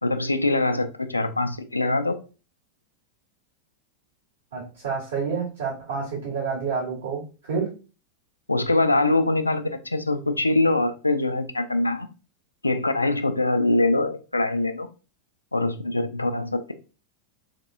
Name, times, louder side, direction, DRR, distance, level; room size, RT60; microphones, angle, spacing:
voice 1, 0.0-2.2 8.5-12.1 12.6-14.9 15.5-16.7, left 2 dB, 80° left, 0.4 m, -23 dB
voice 2, 4.5-7.7, right 5 dB, 65° right, 1.9 m, -29 dB
3.4 x 3.3 x 2.6 m
figure-of-eight pair, 90°, 0 cm